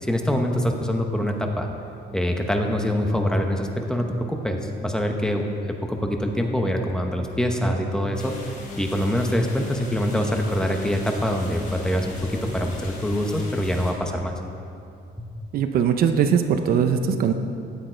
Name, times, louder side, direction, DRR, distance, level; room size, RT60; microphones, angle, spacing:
voice 1, 0.0-1.7 2.1-8.3 8.8-14.3 15.2-15.3, equal, 5° left, 3 dB, 0.8 m, -24 dB
sound 1, 8.1-13.9, left 2 dB, 55° left, 3.6 m, -40 dB
voice 2, 15.5-17.3, right 7 dB, 55° right, 7 dB, 0.7 m, -20 dB
15.0 x 10.0 x 4.5 m, 2.5 s
cardioid pair, 175°, 18 cm